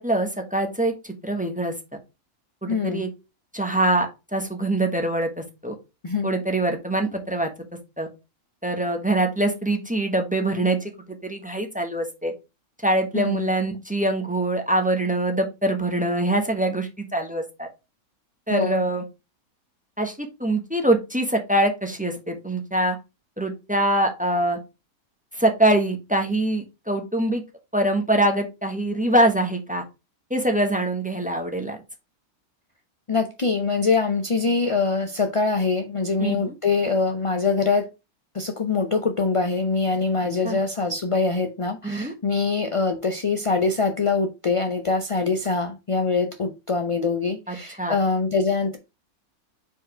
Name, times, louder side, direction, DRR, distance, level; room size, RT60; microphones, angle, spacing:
voice 1, 0.0-1.7 2.6-3.1 3.5-5.7 6.2-7.5 8.0-8.1 8.6-10.9 11.2-12.3 12.8-17.7 18.5-19.0 20.0-23.0 23.4-24.6 25.3-27.4 27.7-29.8 30.3-31.8 36.2-36.5 40.4-40.6 41.8-42.1 47.5-48.0, right 1 dB, 5° right, 4 dB, 1.0 m, -24 dB
voice 2, 2.7-3.0 6.0-6.3 13.1-13.5 18.5-18.8 33.1-37.9 38.3-48.8, left 4 dB, 45° left, 5 dB, 0.4 m, -24 dB
4.8 x 4.5 x 4.8 m, 0.26 s
omnidirectional pair, 1.5 m